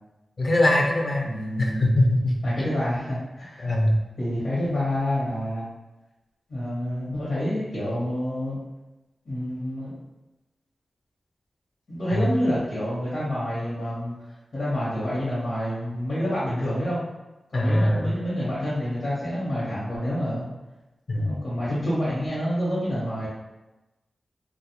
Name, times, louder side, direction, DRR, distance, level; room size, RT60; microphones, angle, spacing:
voice 1, 0.4-2.3 3.6-4.0 12.1-12.3 17.5-18.1 21.1-21.3, left 1 dB, 50° left, 0 dB, 0.6 m, -22 dB
voice 2, 1.2-1.9 2.4-3.7 4.2-5.7 6.5-8.6 9.2-10.0 11.9-14.1 14.5-17.0 17.5-20.4 21.1-23.3, equal, 70° left, -10 dB, 1.1 m, -28 dB
2.4 x 2.1 x 2.9 m, 1.0 s
cardioid pair, 45°, 0 cm